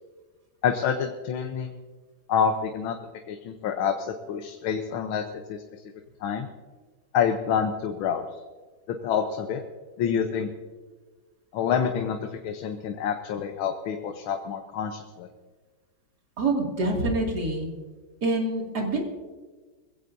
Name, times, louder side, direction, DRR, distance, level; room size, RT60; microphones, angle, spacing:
voice 1, 0.6-1.7 2.3-3.0 3.3-5.2 5.5-5.6 6.2-6.5 7.1-8.2 8.9-9.6 10.0-10.5 11.5-15.3, left 7 dB, 85° left, 5 dB, 1.7 m, -27 dB
voice 2, 16.4-17.7 18.2-19.0, right 2 dB, 50° right, 0 dB, 3.0 m, -26 dB
22.0 x 15.5 x 2.7 m, 1.3 s
omnidirectional pair, 2.2 m